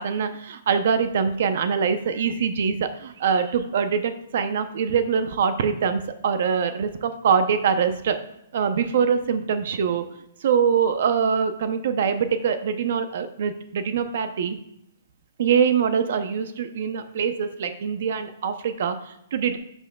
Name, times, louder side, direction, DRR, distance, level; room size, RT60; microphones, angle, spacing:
voice 1, 0.0-8.2 8.5-10.0 10.4-14.6 15.4-19.6, right 6 dB, 50° right, 10 dB, 0.6 m, -23 dB
11.5 x 6.1 x 2.2 m, 0.76 s
hypercardioid pair, 170°, 0 cm